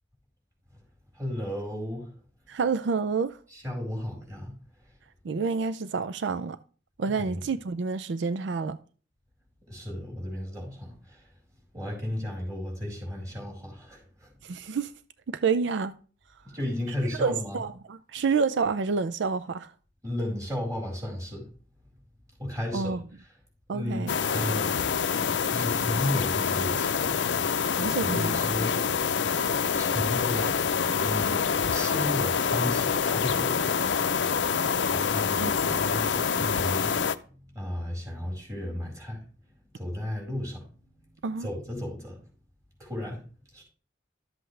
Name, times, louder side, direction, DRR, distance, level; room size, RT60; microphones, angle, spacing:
voice 1, 1.2-2.1 3.5-4.5 7.3-7.4 9.7-11.2 11.7-14.3 16.5-17.6 20.0-21.4 22.4-23.0 23.7-24.7 25.5-27.2 28.0-28.8 29.8-30.6 31.0-31.4 31.7-33.7 34.9-37.2 37.5-39.2 39.7-40.6 41.4-42.2 42.8-43.2 43.5-43.6, left 1 dB, 20° right, 4.3 m, -33 dB
voice 2, 2.5-3.4 5.2-6.6 7.0-8.8 14.4-14.9 15.3-15.9 17.0-19.7 22.7-23.0 23.7-24.2 27.7-28.4 35.4-35.5 41.2-41.5, right 5 dB, 80° right, 0.4 m, -28 dB
sound 1, 24.1-37.2, left 6 dB, 85° left, 0.5 m, -26 dB
12.0 x 7.7 x 3.3 m
head